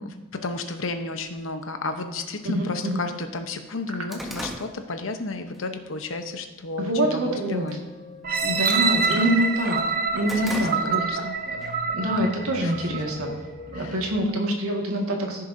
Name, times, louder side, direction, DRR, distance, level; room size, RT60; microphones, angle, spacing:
voice 1, 0.0-7.8 8.4-8.8 10.4-11.3 12.6-12.7 13.7-14.0, left 3 dB, 70° left, 7 dB, 0.9 m, -33 dB
sound 1, 1.2-1.3 2.2-2.3 2.8-2.9 3.2-5.6 6.0-6.3 6.8-7.3 7.6-7.9 8.2-9.4 9.8-11.3 11.6-11.7 12.6-13.5, equal, ahead, 0.8 m, -38 dB
voice 2, 2.5-3.0 6.8-7.7 8.5-9.8 10.1-11.0 11.9-13.3 13.7-15.4, equal, 85° right, 0 dB, 1.9 m, -25 dB
sound 2, 7.4-14.3, left 1 dB, 25° left, 1.3 m, -45 dB
sound 3, 8.2-13.2 13.8-13.9, right 5 dB, 45° right, 0.8 m, -26 dB
15.0 x 6.7 x 2.7 m, 1.3 s
head